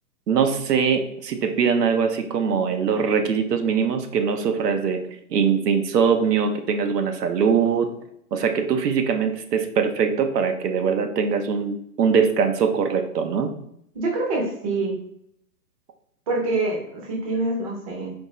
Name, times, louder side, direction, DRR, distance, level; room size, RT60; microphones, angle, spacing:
voice 1, 0.3-5.0 5.3-7.9 8.3-13.5, right 6 dB, 85° right, 6 dB, 0.8 m, -22 dB
voice 2, 13.9-15.0 16.3-18.1, right 2 dB, 25° right, -1 dB, 0.6 m, -25 dB
4.2 x 2.8 x 3.0 m, 0.73 s
hypercardioid pair, 155°, 47 cm